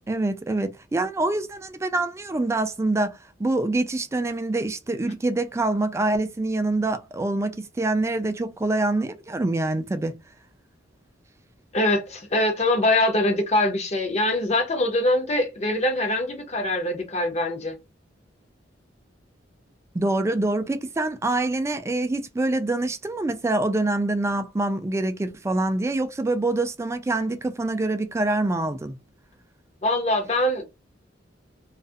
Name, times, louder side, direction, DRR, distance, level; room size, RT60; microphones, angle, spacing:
voice 1, 0.1-10.1 19.9-29.0, right 2 dB, 15° right, 0.3 m, -25 dB
voice 2, 11.7-17.8 29.8-30.6, left 1 dB, 35° left, 0.7 m, -23 dB
2.3 x 2.0 x 2.6 m
head